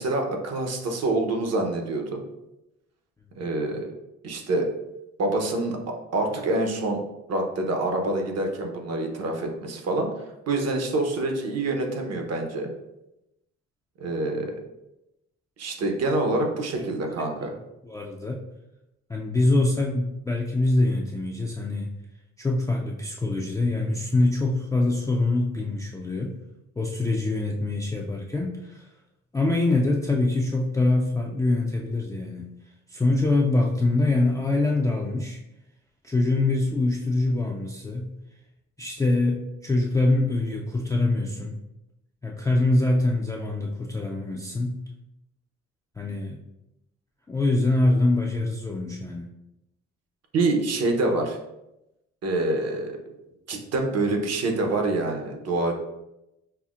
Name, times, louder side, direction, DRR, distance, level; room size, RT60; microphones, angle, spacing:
voice 1, 0.0-2.2 3.4-3.9 4.2-4.7 5.2-5.8 6.1-7.0 7.3-10.1 10.5-12.7 14.0-14.6 15.6-17.5 50.3-51.4 52.2-53.0 53.5-55.7, right 2 dB, 55° right, 3 dB, 0.8 m, -26 dB
voice 2, 17.8-18.4 19.1-21.9 22.4-26.3 26.8-28.9 29.3-32.5 32.9-35.4 36.0-38.1 38.8-41.6 42.2-44.8 46.0-46.4 47.3-49.3, left 2 dB, 10° left, -2 dB, 0.3 m, -24 dB
5.6 x 2.1 x 2.4 m, 0.91 s
cardioid pair, 90°, 30 cm